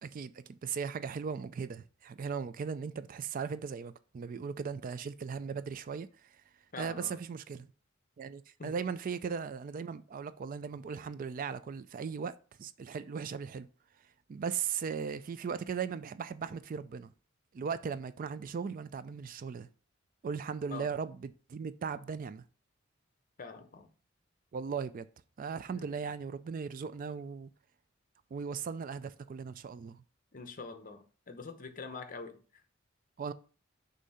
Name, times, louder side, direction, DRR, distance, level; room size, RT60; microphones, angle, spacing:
voice 1, 0.0-6.1 6.8-7.7 8.2-12.3 12.6-13.7 14.3-17.1 17.5-19.7 20.2-22.4 24.5-25.1 25.4-27.5 28.3-30.0 33.2-33.3, right 6 dB, 45° right, 0.3 m, -38 dB
voice 2, 6.7-7.2 8.6-8.7 20.7-20.9 23.4-23.9 25.7-25.9 30.3-32.6, left 4 dB, 45° left, 0.8 m, -45 dB
6.3 x 2.8 x 5.5 m
head